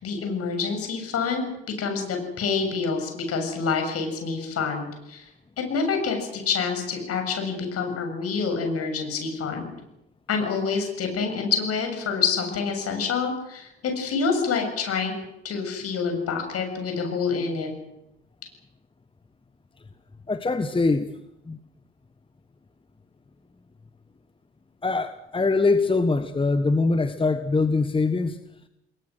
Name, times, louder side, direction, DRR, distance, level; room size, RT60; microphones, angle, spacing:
voice 1, 0.0-1.5 1.8-5.2 5.7-9.7 10.3-15.1 15.4-17.7, left 5 dB, 50° left, 5 dB, 7.3 m, -27 dB
voice 2, 20.3-21.1 21.5-21.6 24.8-28.4, left 3 dB, 15° left, 10 dB, 1.4 m, -23 dB
29.5 x 21.5 x 6.4 m, 0.86 s
figure-of-eight pair, 55°, 30 cm